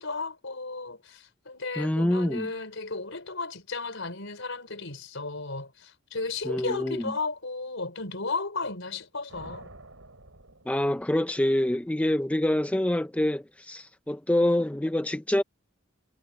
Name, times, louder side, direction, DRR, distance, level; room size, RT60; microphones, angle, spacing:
voice 1, 0.0-9.7, left 3 dB, 65° left, 5.4 m, -34 dB
voice 2, 1.8-2.5 6.5-7.1 10.7-15.4, left 1 dB, 5° left, 0.4 m, -26 dB
sound 1, 9.3-11.5, right 2 dB, 70° right, 6.6 m, -49 dB
head